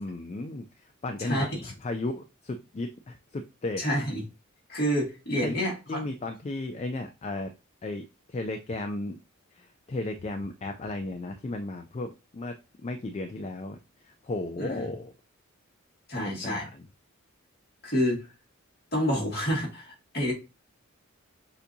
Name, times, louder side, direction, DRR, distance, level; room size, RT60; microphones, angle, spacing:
voice 1, 0.0-3.8 5.4-5.6 5.9-7.5 7.8-9.2 9.5-15.1 16.2-16.9, left 2 dB, 30° left, 0.3 m, -35 dB
voice 2, 1.2-1.6 3.8-4.2 4.7-6.0 14.6-14.8 16.1-16.7 17.8-18.3 18.9-20.3, equal, 50° left, 2.1 m, -28 dB
6.7 x 2.7 x 2.7 m
head